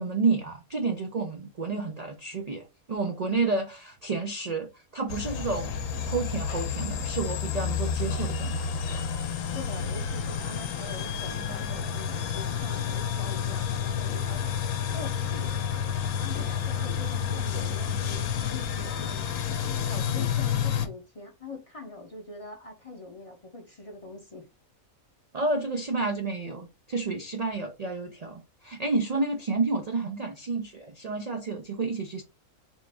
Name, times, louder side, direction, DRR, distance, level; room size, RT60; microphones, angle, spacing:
voice 1, 0.0-8.7 25.3-32.2, right 3 dB, 75° right, 0.3 m, -30 dB
sound 1, 5.1-20.9, left 7 dB, 70° left, 1.0 m, -30 dB
voice 2, 9.5-14.5 14.9-15.8 16.2-19.4 19.8-24.5, left 3 dB, 35° left, 0.5 m, -43 dB
3.6 x 2.5 x 3.3 m
omnidirectional pair, 1.5 m